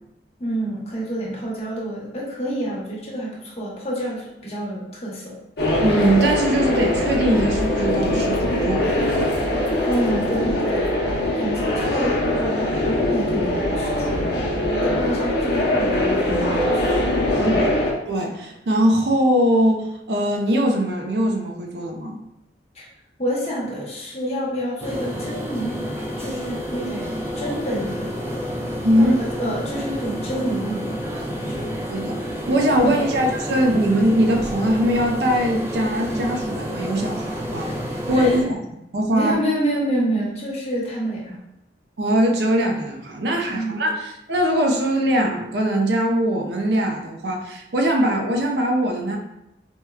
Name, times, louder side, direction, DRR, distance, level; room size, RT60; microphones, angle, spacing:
voice 1, 0.4-5.4 9.6-10.9 11.4-16.9 17.4-17.5 22.7-22.8 23.2-25.8 26.2-28.1 29.0-31.0 31.3-31.7 32.8-33.0 38.1-38.4 39.1-41.4 43.5-43.9, right 1 dB, 35° left, -5 dB, 0.9 m, -28 dB
sound 1, 5.6-17.9, left 1 dB, 75° left, 0.7 m, -22 dB
voice 2, 5.8-8.9 17.4-17.5 18.1-22.2 28.8-29.1 31.9-32.2 32.5-37.7 38.1-38.6 38.9-39.3 42.0-49.2, equal, 75° right, 2 dB, 0.6 m, -21 dB
sound 2, 24.8-38.4, equal, 15° right, 0.3 m, -29 dB
4.4 x 2.2 x 2.3 m, 0.86 s
head